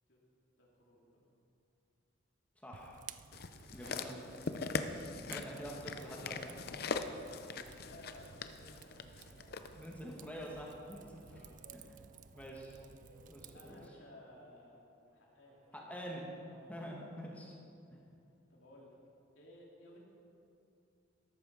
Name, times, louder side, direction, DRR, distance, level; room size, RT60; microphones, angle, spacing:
voice 1, 0.6-1.2 3.2-3.6 5.1-5.3 7.2-9.6 11.3-11.6 13.5-14.8 15.1-15.9 16.4-16.7 18.5-19.0 19.3-20.0, left 1 dB, 80° left, -4 dB, 3.0 m, -58 dB
voice 2, 2.6-3.0 3.7-4.2 5.2-6.6 9.7-11.4 11.7-11.8 12.3-12.8 13.3-13.8 15.9-16.3 16.7-17.5, equal, 10° left, -2 dB, 1.5 m, -46 dB
Fire, 2.7-13.9, right 8 dB, 40° right, 0.3 m, -56 dB
sound 1, 3.3-9.7 10.4-10.5, left 4 dB, 50° left, 0.6 m, -41 dB
sound 2, 6.7-17.5, right 1 dB, 60° right, 3.4 m, -65 dB
13.0 x 8.4 x 6.2 m, 2.6 s
head